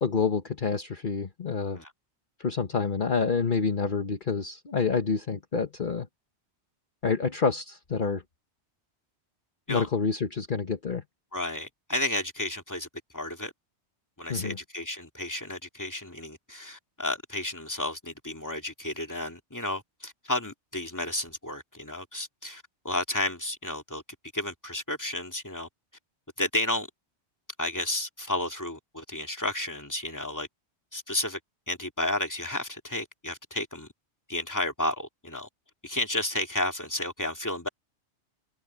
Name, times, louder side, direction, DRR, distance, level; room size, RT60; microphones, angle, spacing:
voice 1, 0.0-1.8 2.4-6.1 7.0-8.2 9.7-11.0 14.3-14.6, left 5 dB, 45° left, 1.3 m, -28 dB
voice 2, 11.3-12.9 13.1-13.5 14.2-24.0 24.3-25.7 26.4-26.9 27.6-30.5 30.9-31.4 31.7-33.9 34.3-35.5 35.8-37.7, left 1 dB, 15° left, 2.6 m, -32 dB
omnidirectional pair, 1.2 m